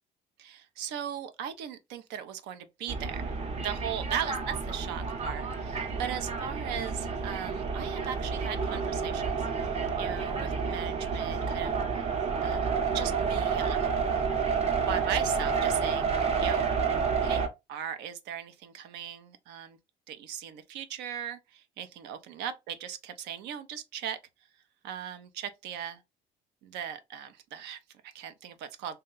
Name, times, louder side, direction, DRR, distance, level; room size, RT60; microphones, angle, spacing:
voice 1, 0.4-9.7 10.0-12.1 12.4-12.7 12.9-13.9 14.6-16.7 17.2-17.4 17.7-19.8 20.1-24.2 24.8-26.0 26.6-29.0, right 9 dB, 90° right, 0.5 m, -38 dB
sound 1, 2.9-17.5, right 5 dB, 35° right, 0.7 m, -30 dB
2.7 x 2.2 x 3.7 m
cardioid pair, 110°, 17 cm